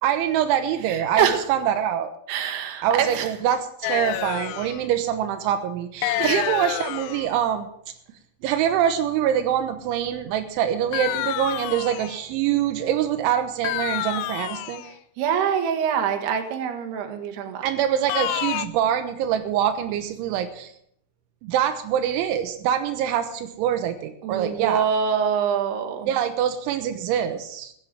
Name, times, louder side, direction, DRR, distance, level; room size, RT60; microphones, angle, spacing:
voice 1, 0.0-2.1 2.8-7.7 8.4-14.8 17.6-20.7 21.4-24.9 26.1-27.7, right 10 dB, 85° right, 8 dB, 3.4 m, -24 dB
voice 2, 0.9-1.4 2.3-3.3 6.2-6.4 15.2-17.6 24.2-26.1, right 8 dB, 65° right, 5 dB, 3.5 m, -24 dB
sound 1, 3.8-4.8 6.0-7.3 10.9-12.3 13.6-14.9 18.1-18.7, left 14 dB, 80° left, 2.5 m, -28 dB
15.5 x 8.4 x 7.6 m, 0.70 s
omnidirectional pair, 5.3 m